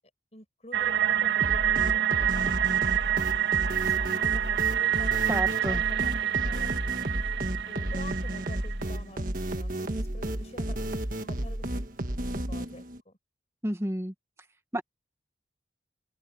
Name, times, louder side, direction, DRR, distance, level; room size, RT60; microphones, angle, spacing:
voice 1, 0.3-3.3 3.8-5.2 5.7-7.1 7.7-11.9 12.3-13.2, left 1 dB, 35° left, 7.3 m, -48 dB
sound 1, 0.7-8.7, right 10 dB, 65° right, 2.4 m, -27 dB
sound 2, 1.4-13.0, right 1 dB, 50° right, 1.5 m, -32 dB
voice 2, 5.3-5.8 13.6-14.1 14.7-14.8, equal, 15° right, 1.7 m, -30 dB
open air
head